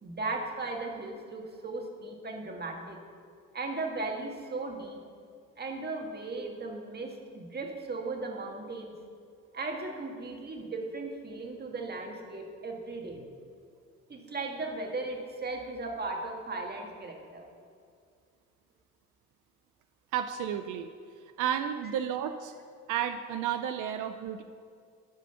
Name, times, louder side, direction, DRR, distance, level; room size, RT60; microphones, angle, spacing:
voice 1, 0.0-3.0 3.5-5.0 5.6-8.9 9.5-13.2 14.1-17.4, right 3 dB, 35° right, 1 dB, 1.7 m, -37 dB
voice 2, 20.1-20.9 21.4-22.5 22.9-24.4, right 9 dB, 85° right, 8 dB, 0.5 m, -32 dB
12.5 x 5.1 x 5.6 m, 2.2 s
cardioid pair, 90°, 30 cm